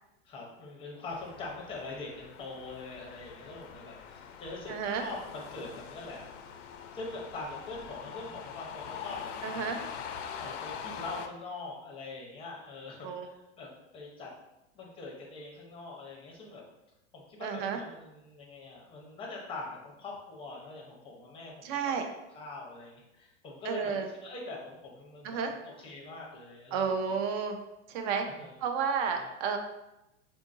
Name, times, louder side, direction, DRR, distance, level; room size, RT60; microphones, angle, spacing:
voice 1, 0.2-6.3 6.9-9.8 10.4-14.3 14.7-16.7 17.1-22.1 22.3-27.2 28.2-28.6 29.1-29.3, left 3 dB, 15° left, -2 dB, 0.6 m, -43 dB
sound 1, 1.1-11.3, left 7 dB, 70° left, 0.5 m, -43 dB
voice 2, 4.7-5.0 9.4-9.8 13.0-13.2 17.4-17.8 21.6-22.0 23.7-24.1 25.2-25.5 26.7-27.6 27.9-28.3 28.6-29.6, right 6 dB, 40° right, 5 dB, 0.5 m, -31 dB
3.7 x 2.5 x 2.5 m, 0.91 s
hypercardioid pair, 130°, 38 cm